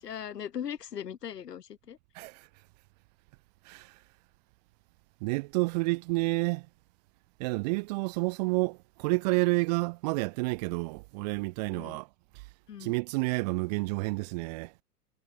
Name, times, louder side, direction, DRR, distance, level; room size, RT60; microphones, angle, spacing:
voice 1, 0.0-2.0 11.7-12.0 12.7-12.9, left 9 dB, 75° left, 1.9 m, -39 dB
voice 2, 2.1-2.5 3.6-4.0 5.2-6.7 7.4-12.1 12.8-14.7, right 26 dB, 30° right, 0.5 m, -29 dB
hypercardioid pair, 110°, 48 cm